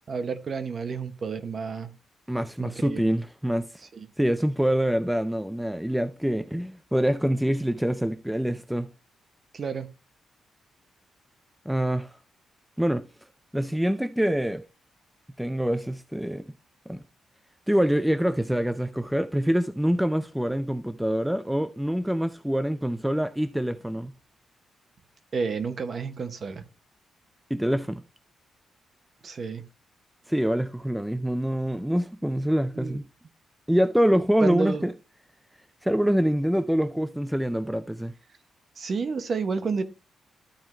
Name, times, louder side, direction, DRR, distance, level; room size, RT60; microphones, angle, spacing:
voice 1, 0.1-1.9 2.6-3.1 3.9-4.1 9.5-9.9 25.3-26.6 29.2-29.6 32.7-33.0 34.4-34.9 38.8-39.8, right 5 dB, 45° right, 0.9 m, -30 dB
voice 2, 2.3-3.7 4.2-8.9 11.7-12.2 12.8-13.0 13.5-14.6 15.4-16.5 16.9-17.0 17.7-24.1 27.5-28.0 30.3-33.1 33.7-34.9 35.8-38.1, equal, 5° right, 0.4 m, -25 dB
13.0 x 4.5 x 3.2 m
cardioid pair, 135°, 0 cm